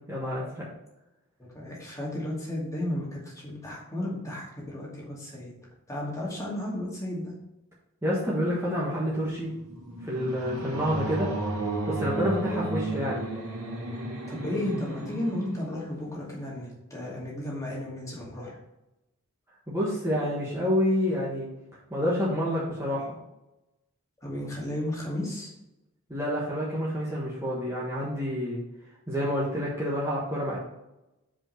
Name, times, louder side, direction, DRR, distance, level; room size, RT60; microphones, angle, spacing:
voice 1, 0.1-0.6 8.0-9.5 10.0-11.3 11.9-13.2 19.7-21.5 21.9-23.1 26.1-28.6 29.1-30.6, equal, 10° right, -7 dB, 1.4 m, -28 dB
voice 2, 1.4-5.5 5.9-7.3 14.3-18.6 24.2-25.5, left 1 dB, 15° left, -5 dB, 2.3 m, -34 dB
sound 1, 9.2-16.5, right 2 dB, 80° right, 2.3 m, -34 dB
5.4 x 5.0 x 6.4 m, 0.93 s
head